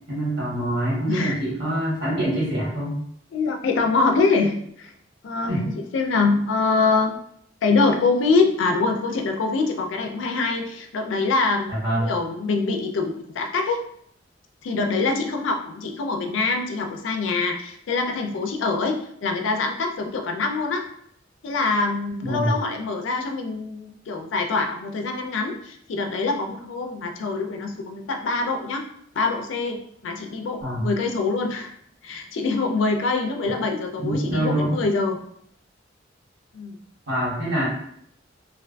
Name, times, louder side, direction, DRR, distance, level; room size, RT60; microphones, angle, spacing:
voice 1, 0.1-3.0 5.5-5.7 11.7-12.1 22.2-22.6 30.6-30.8 34.0-34.7 37.1-37.7, right 1 dB, 65° right, -7 dB, 1.5 m, -25 dB
voice 2, 3.3-4.9 5.2-7.1 7.6-11.8 12.1-13.8 14.6-20.9 21.4-28.9 29.2-31.7 32.0-35.2 36.5-36.8, left 3 dB, 85° left, 3 dB, 0.4 m, -24 dB
2.4 x 2.2 x 2.4 m, 0.68 s
head